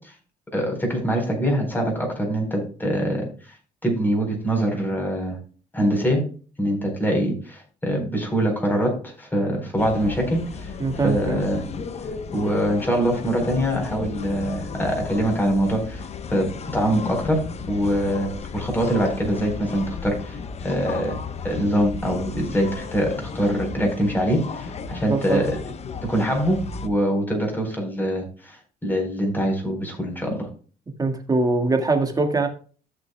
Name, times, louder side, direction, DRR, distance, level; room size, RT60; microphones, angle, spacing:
voice 1, 0.5-3.3 3.8-5.4 5.7-6.2 6.6-10.7 11.0-11.6 12.3-16.0 16.3-20.4 20.6-21.2 21.4-25.6 26.0-30.5, equal, 10° left, 2 dB, 4.3 m, -24 dB
sound 1, 9.8-26.9, left 5 dB, 40° left, 0.9 m, -34 dB
voice 2, 10.8-11.4 25.1-25.4 31.0-32.5, right 3 dB, 20° right, 5 dB, 1.8 m, -22 dB
14.5 x 6.7 x 2.3 m, 0.38 s
cardioid pair, 110°, 17 cm